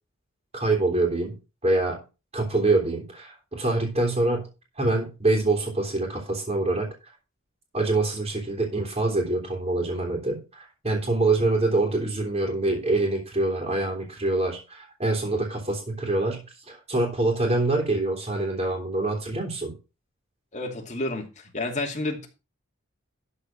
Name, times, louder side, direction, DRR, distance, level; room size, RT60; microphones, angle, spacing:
voice 1, 0.5-1.4 1.6-2.0 2.3-4.5 4.8-6.9 7.7-16.4 16.7-19.7, right 2 dB, 30° right, 0 dB, 3.2 m, -25 dB
voice 2, 20.5-22.3, left 2 dB, 35° left, 2 dB, 2.5 m, -30 dB
12.5 x 4.8 x 5.9 m, 0.30 s
head